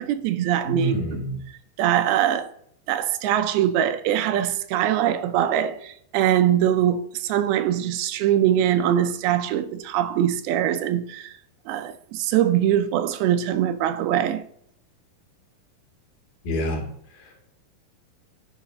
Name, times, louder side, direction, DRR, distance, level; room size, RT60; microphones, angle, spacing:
voice 1, 0.0-1.0 1.8-2.5 2.9-11.3 11.7-14.4, right 11 dB, 85° right, 2.6 m, -22 dB
voice 2, 0.6-1.4 16.4-17.6, equal, 70° left, 4.0 m, -28 dB
10.5 x 4.1 x 6.2 m
omnidirectional pair, 4.3 m